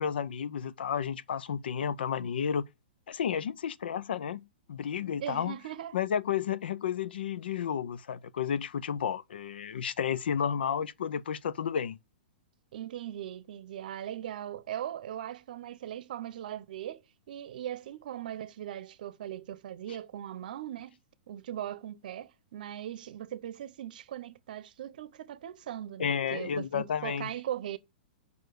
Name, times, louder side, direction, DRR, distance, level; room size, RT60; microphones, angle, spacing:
voice 1, 0.0-2.7 3.1-5.6 5.9-12.0 26.0-27.3, left 8 dB, 85° left, 0.5 m, -32 dB
voice 2, 5.2-6.0 12.7-21.0 21.3-27.8, right 11 dB, 55° right, 0.7 m, -39 dB
6.8 x 5.3 x 6.3 m
hypercardioid pair, 170°, 5 cm